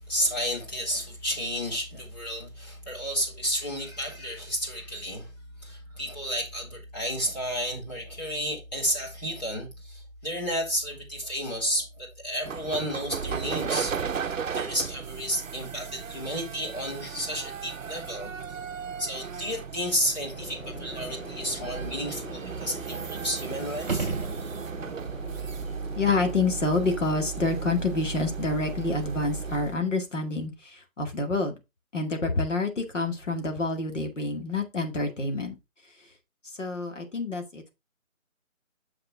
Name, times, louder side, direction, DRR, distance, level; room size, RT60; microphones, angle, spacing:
voice 1, 0.1-5.3 5.6-13.9 14.2-18.6 19.0-24.1, equal, 30° left, 3.1 m, -32 dB
sound 1, 12.4-29.8, right 6 dB, 70° right, 0.7 m, -36 dB
sound 2, 20.3-29.6, equal, 80° left, 4.8 m, -43 dB
sound 3, 23.8-25.0 29.9-30.0, right 4 dB, 40° right, 1.6 m, -32 dB
voice 2, 26.0-31.5 31.9-35.6 36.5-37.7, left 3 dB, 60° left, 2.2 m, -28 dB
6.6 x 6.1 x 3.6 m
figure-of-eight pair, 175°, 40 cm